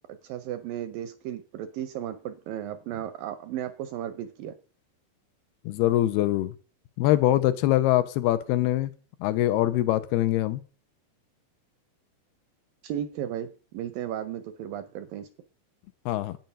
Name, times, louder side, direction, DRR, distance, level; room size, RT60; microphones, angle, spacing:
voice 1, 0.1-4.6 12.8-15.3, right 10 dB, 75° right, 11 dB, 2.1 m, -35 dB
voice 2, 5.7-6.5 7.0-8.9 9.2-10.6 16.1-16.4, left 14 dB, 85° left, 12 dB, 2.7 m, -23 dB
10.5 x 9.2 x 5.5 m, 0.37 s
omnidirectional pair, 4.7 m